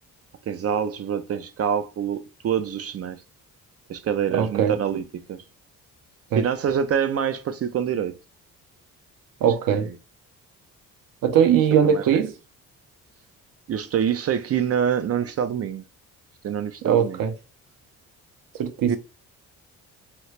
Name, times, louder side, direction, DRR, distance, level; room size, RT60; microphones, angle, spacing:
voice 1, 0.5-3.2 3.9-5.4 6.4-8.2 9.4-10.0 11.8-12.2 13.7-15.8 16.4-17.2 18.9-19.0, right 8 dB, 45° right, 0.4 m, -26 dB
voice 2, 4.3-4.7 6.3-6.4 9.4-9.9 11.2-12.3 16.8-17.3 18.6-19.0, right 8 dB, 70° right, 0.8 m, -20 dB
2.9 x 2.4 x 3.1 m
cardioid pair, 75°, 34 cm